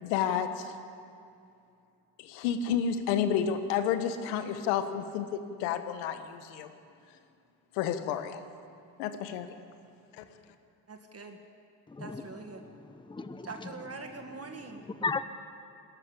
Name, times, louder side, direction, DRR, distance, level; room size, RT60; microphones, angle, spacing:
voice 1, 0.0-0.8 2.4-6.7 7.7-8.4 9.0-9.5 10.2-10.3, left 8 dB, 80° left, 9 dB, 1.6 m, -30 dB
voice 2, 10.9-11.4 12.0-12.7 13.4-14.9, right 3 dB, 30° right, 5 dB, 1.8 m, -43 dB
voice 3, 11.9-12.2 12.6-13.7 15.0-15.2, left 4 dB, 10° left, 11 dB, 0.9 m, -35 dB
19.5 x 13.5 x 9.9 m, 2.5 s
supercardioid pair, 75°, 50 cm